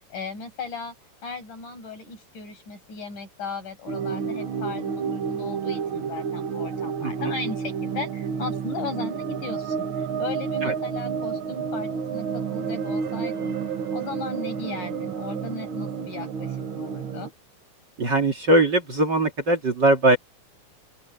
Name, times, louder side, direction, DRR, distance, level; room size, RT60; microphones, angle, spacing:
voice 1, 0.1-0.9 1.2-13.5 13.9-17.3, left 4 dB, 70° left, 8.8 m, -36 dB
sound 1, 3.9-17.3, right 6 dB, 50° right, 1.7 m, -30 dB
voice 2, 7.0-7.3 10.6-10.7 18.0-20.2, right 2 dB, 35° right, 2.7 m, -21 dB
open air
omnidirectional pair, 3.7 m